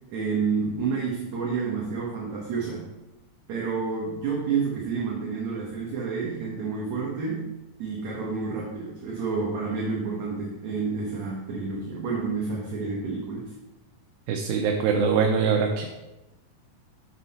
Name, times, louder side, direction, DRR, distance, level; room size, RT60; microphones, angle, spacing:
voice 1, 0.1-2.9 3.5-7.5 7.8-13.5, right 5 dB, 65° right, -4 dB, 1.9 m, -29 dB
voice 2, 14.3-15.9, right 6 dB, 85° right, 2 dB, 2.8 m, -23 dB
7.6 x 6.3 x 4.2 m, 0.99 s
omnidirectional pair, 4.7 m